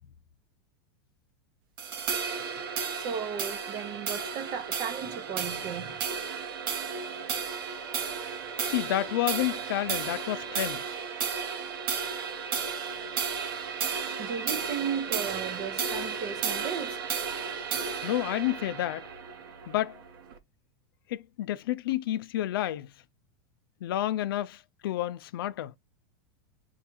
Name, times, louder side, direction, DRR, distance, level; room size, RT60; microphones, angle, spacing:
sound 1, 1.8-20.4, right 6 dB, 85° right, 1.0 m, -33 dB
voice 1, 2.9-6.0 14.2-17.0, right 7 dB, 35° right, 0.6 m, -35 dB
voice 2, 8.6-11.0 18.0-19.1 19.7-20.0 21.1-22.9 23.8-25.7, left 13 dB, 85° left, 0.5 m, -30 dB
4.5 x 2.3 x 4.4 m
supercardioid pair, 165°, 12 cm